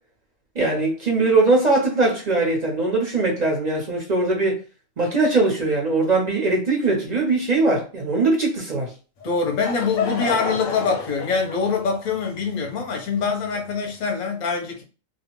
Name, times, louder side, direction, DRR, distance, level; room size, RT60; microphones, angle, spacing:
voice 1, 0.5-4.6 5.0-8.9, right 3 dB, 45° right, 0.6 m, -21 dB
Laughter / Crowd, 9.2-13.9, left 4 dB, 90° left, 1.0 m, -31 dB
voice 2, 9.2-14.8, left 5 dB, 45° left, 0.6 m, -24 dB
2.4 x 2.0 x 2.9 m
omnidirectional pair, 1.4 m